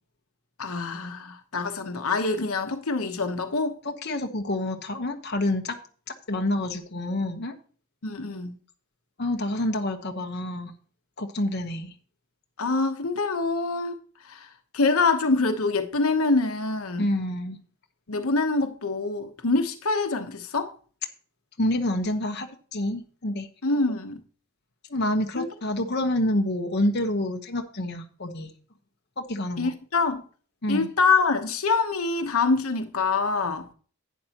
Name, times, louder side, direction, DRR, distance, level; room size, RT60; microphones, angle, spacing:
voice 1, 0.6-3.7 8.0-8.6 12.6-14.0 14.2-14.5 14.7-17.1 18.1-20.7 23.6-24.2 25.4-25.5 29.6-30.2 30.7-33.7, left 3 dB, 90° left, 1.1 m, -25 dB
voice 2, 3.8-5.8 6.3-7.5 9.2-10.7 11.2-11.9 17.0-17.6 21.6-23.5 24.9-28.5 29.2-29.7 30.6-30.9, left 1 dB, 50° left, 1.1 m, -28 dB
11.5 x 9.3 x 3.0 m
head